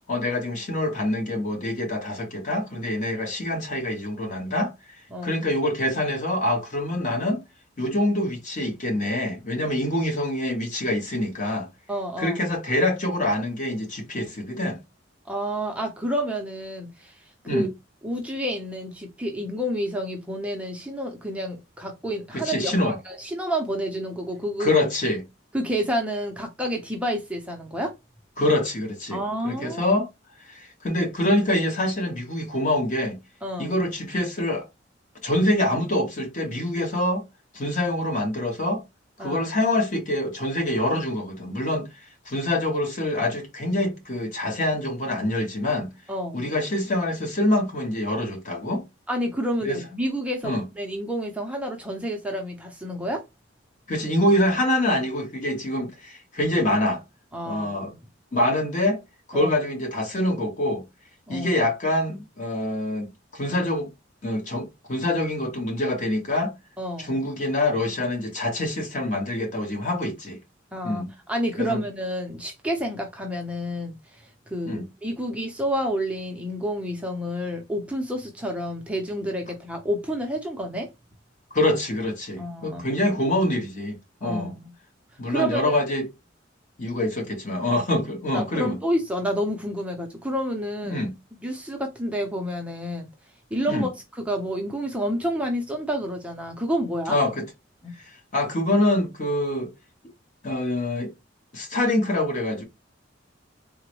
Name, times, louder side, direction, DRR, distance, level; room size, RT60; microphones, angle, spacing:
voice 1, 0.1-4.7 5.2-7.4 7.8-11.7 12.2-14.8 17.4-17.7 22.3-23.0 24.6-25.2 28.4-30.1 30.4-33.2 33.6-34.7 35.2-37.2 37.5-38.8 39.2-45.9 46.3-48.8 49.6-49.8 50.4-50.6 53.9-57.0 57.4-57.9 58.3-59.0 59.3-60.8 61.3-63.9 64.2-66.5 67.0-70.4 70.8-71.1 71.6-71.8 74.7-74.9 81.5-84.6 85.2-86.1 86.8-88.8 90.9-91.1 93.7-93.9 97.1-97.5 98.3-99.7 100.4-101.1 101.5-102.6, left 1 dB, 40° left, 1.0 m, -25 dB
voice 2, 11.9-12.4 15.3-17.7 18.0-24.7 25.5-27.9 29.1-29.8 33.4-33.8 39.2-39.5 46.1-46.4 49.1-53.2 55.8-55.9 57.3-58.0 59.3-59.5 61.3-61.6 66.8-67.2 70.7-80.9 82.4-82.8 84.2-84.7 85.3-85.8 88.3-91.0 91.4-93.1 93.5-97.2 97.8-97.9, equal, 5° right, 0.5 m, -29 dB
3.7 x 2.1 x 3.0 m
head